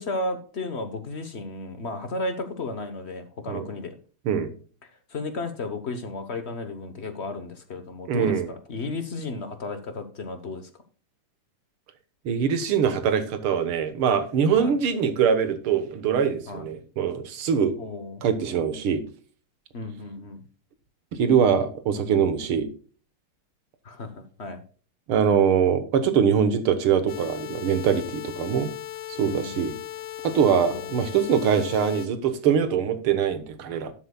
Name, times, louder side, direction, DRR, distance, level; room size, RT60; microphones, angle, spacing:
voice 1, 0.0-3.9 4.8-10.7 14.6-14.7 16.5-16.7 17.8-18.2 19.7-20.4 23.8-24.6 29.2-29.7 30.4-30.9, left 2 dB, 45° left, 9 dB, 0.9 m, -34 dB
voice 2, 8.1-8.5 12.3-17.8 18.2-19.0 21.1-22.7 25.1-28.7 29.1-29.8 30.2-33.9, right 7 dB, 75° right, 10 dB, 2.1 m, -23 dB
sound 1, 27.1-32.1, left 13 dB, 70° left, 1.7 m, -37 dB
12.5 x 7.9 x 2.3 m, 0.40 s
omnidirectional pair, 2.4 m